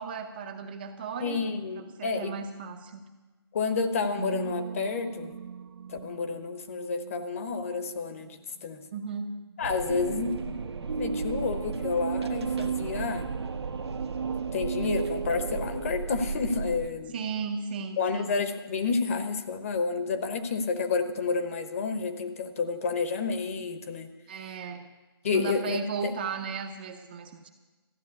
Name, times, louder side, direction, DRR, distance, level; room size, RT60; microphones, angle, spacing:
voice 1, 0.0-1.4 1.8-3.1 8.9-9.3 17.1-18.4 24.3-24.8 25.3-27.5, right 5 dB, 20° right, 5 dB, 0.6 m, -35 dB
voice 2, 1.2-2.3 3.5-5.3 5.9-8.8 9.6-10.4 10.9-13.3 14.5-17.1 18.0-24.1 25.2-26.1, left 4 dB, 35° left, 8 dB, 1.0 m, -30 dB
sound 1, 4.2-7.3 9.9-15.9, right 6 dB, 60° right, 0.4 m, -35 dB
Wind, 9.6-16.9, right 5 dB, 85° right, 1.2 m, -36 dB
14.0 x 7.4 x 9.5 m, 1.2 s
hypercardioid pair, 170°, 13 cm